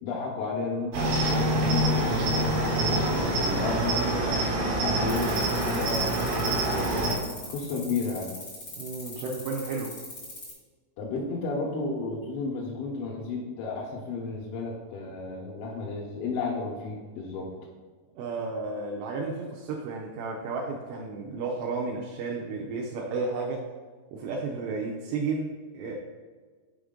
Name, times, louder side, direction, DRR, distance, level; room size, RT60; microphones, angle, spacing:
voice 1, 0.0-4.4 4.8-7.2 7.5-8.4 11.0-17.5, left 3 dB, 80° left, -2 dB, 3.2 m, -33 dB
Cricket, 0.9-7.2, right 1 dB, 65° right, 2.3 m, -26 dB
sound 1, 5.0-10.5, left 3 dB, 45° left, 1.4 m, -41 dB
voice 2, 8.8-10.0 18.2-23.7 24.1-26.0, right 3 dB, 80° right, -2 dB, 2.6 m, -32 dB
7.1 x 4.8 x 3.8 m, 1.5 s
omnidirectional pair, 5.7 m